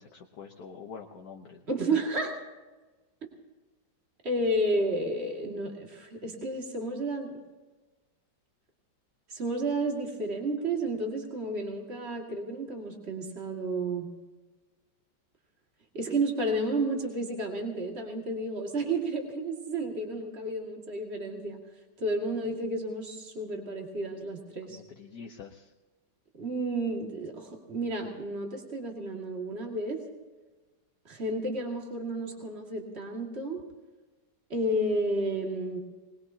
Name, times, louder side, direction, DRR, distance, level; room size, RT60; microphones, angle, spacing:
voice 1, 0.0-1.6 24.7-25.7, left 6 dB, 60° left, 2 dB, 1.4 m, -46 dB
voice 2, 1.7-2.4 4.2-7.3 9.3-14.1 15.9-21.6 22.0-24.8 26.4-30.0 31.1-33.6 34.5-35.8, right 2 dB, 35° right, 0 dB, 2.4 m, -31 dB
22.5 x 20.0 x 2.8 m, 1.2 s
omnidirectional pair, 2.0 m